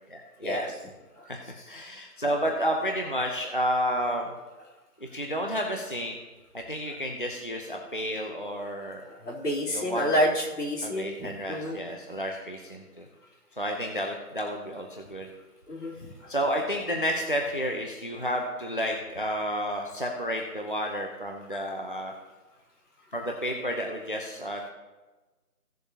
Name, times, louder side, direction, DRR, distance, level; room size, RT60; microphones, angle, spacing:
voice 1, 0.1-0.8 1.3-4.3 5.1-6.2 6.5-9.0 9.7-10.1 10.8-13.1 13.6-15.3 16.3-22.1 23.1-24.7, equal, 35° left, 1 dB, 0.7 m, -31 dB
voice 2, 9.1-11.8 15.7-15.9, equal, 75° left, -4 dB, 3.5 m, -28 dB
16.5 x 6.9 x 2.8 m, 1.2 s
figure-of-eight pair, 170°, 47 cm